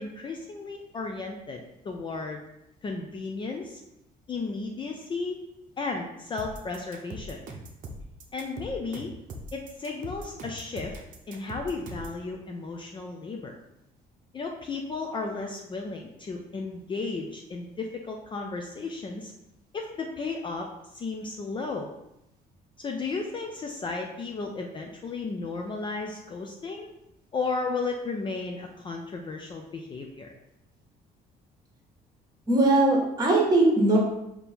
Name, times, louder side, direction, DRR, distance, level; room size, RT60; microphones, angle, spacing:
voice 1, 0.0-2.4 2.8-3.8 4.3-5.4 5.8-7.4 8.3-9.1 9.5-10.9 11.3-13.5 14.3-19.3 19.7-20.7 20.9-21.9 22.8-26.9 27.3-30.3, left 3 dB, 30° left, 2 dB, 0.4 m, -34 dB
sound 1, 6.4-12.2, right 1 dB, 55° right, 0.7 m, -41 dB
voice 2, 32.5-34.0, right 2 dB, 25° right, -2 dB, 1.3 m, -20 dB
4.2 x 2.8 x 3.4 m, 0.84 s
cardioid pair, 110°, 17 cm